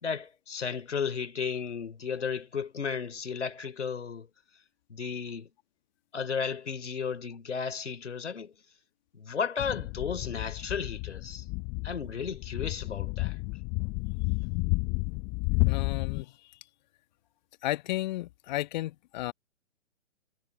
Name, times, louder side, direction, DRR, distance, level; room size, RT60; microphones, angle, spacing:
voice 1, 0.0-4.3 4.9-5.5 6.1-8.5 9.1-11.4 11.8-13.4, left 6 dB, 70° left, 3.9 m, -34 dB
sound 1, 9.6-16.2, left 29 dB, 20° left, 0.7 m, -31 dB
voice 2, 15.6-16.4 17.6-19.3, left 16 dB, 35° left, 1.8 m, -33 dB
figure-of-eight pair, 125°, 37 cm